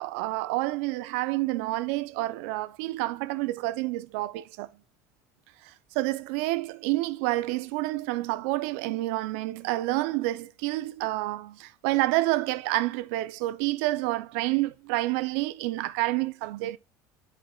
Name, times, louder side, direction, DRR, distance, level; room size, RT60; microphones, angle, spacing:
voice 1, 0.0-4.7 5.6-16.8, right 18 dB, 75° right, 0.6 m, -29 dB
10.5 x 4.6 x 2.3 m
cardioid pair, 175°, 7 cm